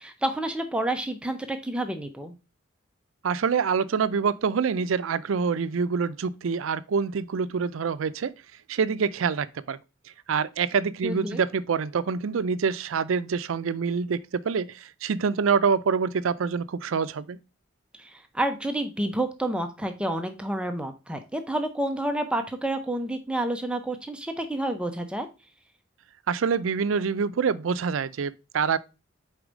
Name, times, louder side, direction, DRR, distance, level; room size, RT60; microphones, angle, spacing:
voice 1, 0.0-2.3 11.0-11.4 18.0-25.3, right 1 dB, 5° right, 0.5 m, -29 dB
voice 2, 3.2-8.3 8.7-9.8 10.3-17.4 26.3-28.8, right 6 dB, 80° right, 0.4 m, -26 dB
4.8 x 4.3 x 5.0 m
head